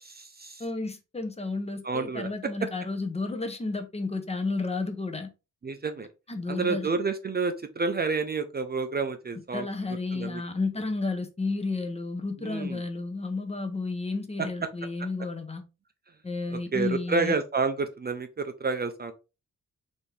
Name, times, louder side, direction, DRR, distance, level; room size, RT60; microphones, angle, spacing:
voice 1, 0.0-0.6 1.8-2.3 5.6-6.1 6.5-9.7 10.1-10.4 12.4-12.8 14.4-14.5 16.5-19.1, right 4 dB, 30° right, 0.5 m, -29 dB
voice 2, 0.6-5.3 6.3-6.9 9.5-15.6 16.2-17.4, left 3 dB, 20° left, 0.7 m, -32 dB
4.3 x 3.5 x 3.2 m
wide cardioid pair, 140°, 31 cm